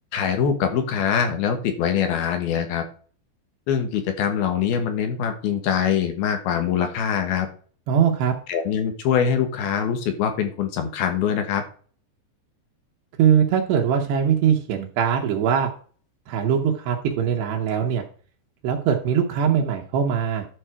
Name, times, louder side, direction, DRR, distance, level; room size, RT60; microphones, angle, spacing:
voice 1, 0.1-2.8 3.7-7.5 8.5-11.6, left 8 dB, 65° left, 6 dB, 2.8 m, -23 dB
voice 2, 7.9-8.3 13.2-15.7 16.3-18.0 18.6-20.5, right 8 dB, 75° right, 1 dB, 3.0 m, -21 dB
11.5 x 5.4 x 4.5 m, 0.43 s
omnidirectional pair, 5.2 m